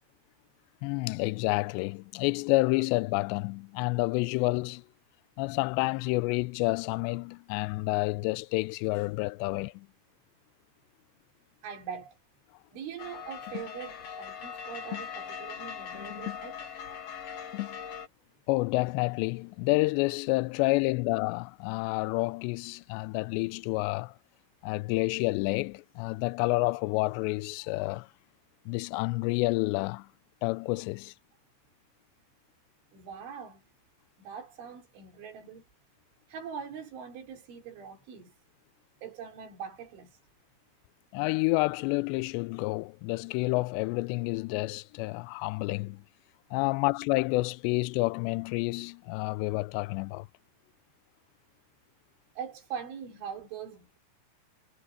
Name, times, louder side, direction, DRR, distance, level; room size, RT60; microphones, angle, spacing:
voice 1, 0.8-4.8 5.4-9.9 18.5-24.1 24.6-28.1 28.7-30.1 30.4-31.1 41.1-46.0 46.5-50.3, left 24 dB, 85° left, 2.6 m, -29 dB
voice 2, 11.6-12.2 12.7-16.6 32.9-33.6 34.2-35.6 36.3-38.3 39.0-40.2 52.4-54.0, right 7 dB, 85° right, 6.4 m, -42 dB
sound 1, 13.0-18.1, left 9 dB, 60° left, 1.7 m, -39 dB
omnidirectional pair, 5.3 m